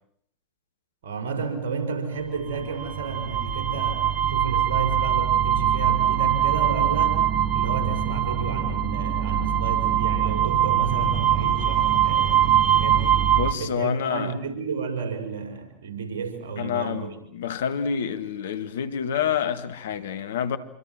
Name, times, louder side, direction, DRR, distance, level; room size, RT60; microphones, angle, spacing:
voice 1, 1.0-7.3 7.5-13.2 13.5-17.1, right 5 dB, 75° right, 6.3 m, -31 dB
sound 1, 2.5-13.5, right 10 dB, 45° right, 2.1 m, -22 dB
voice 2, 13.3-14.3 16.6-20.6, left 8 dB, 75° left, 1.9 m, -28 dB
27.0 x 24.5 x 7.6 m
hypercardioid pair, 85°, 0 cm